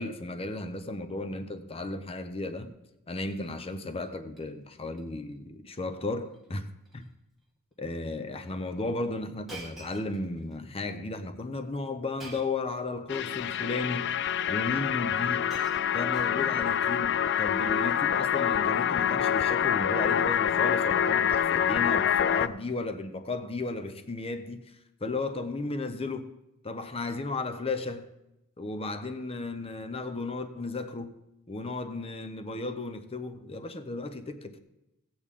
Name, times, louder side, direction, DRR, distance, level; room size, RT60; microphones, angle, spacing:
voice 1, 0.0-2.7 3.1-7.1 7.8-14.1 14.5-15.5 15.9-24.6 25.0-26.3 26.6-28.1 28.6-31.1 31.5-34.6, left 3 dB, 25° left, 0.7 m, -34 dB
Shatter, 3.2-3.6 4.0-4.4 4.8-5.0 5.3-5.4 6.3-6.5 6.8-7.1 7.8-7.9 9.5-10.6 12.2-12.7 13.7-13.8 14.8-14.9 15.2-16.7 17.7-17.9, right 2 dB, ahead, 1.8 m, -49 dB
sound 1, 13.1-22.5, left 9 dB, 50° left, 0.3 m, -26 dB
16.5 x 8.3 x 3.7 m
head